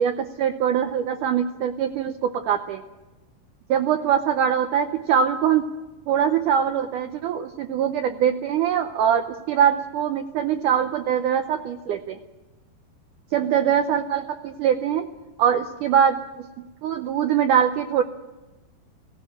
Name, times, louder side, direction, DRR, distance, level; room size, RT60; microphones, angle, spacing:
voice 1, 0.0-2.8 3.7-5.7 6.1-12.2 13.3-15.1 15.4-16.2 16.8-18.0, right 8 dB, 85° right, 7 dB, 1.8 m, -22 dB
18.0 x 16.5 x 9.9 m, 1.1 s
omnidirectional pair, 4.6 m